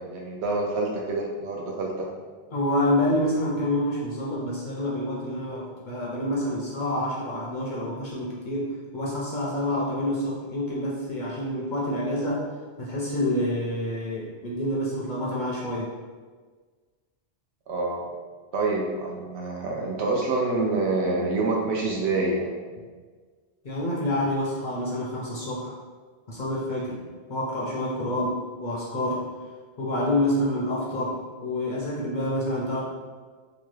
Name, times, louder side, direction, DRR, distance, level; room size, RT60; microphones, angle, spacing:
voice 1, 0.0-2.1 17.7-18.1 18.5-22.5, right 3 dB, 75° right, -1 dB, 0.9 m, -27 dB
voice 2, 2.5-12.4 12.8-15.9 23.6-25.7 26.3-27.0 27.3-29.2 29.8-32.8, left 1 dB, 55° left, -4 dB, 0.6 m, -27 dB
2.9 x 2.2 x 3.1 m, 1.5 s
omnidirectional pair, 1.1 m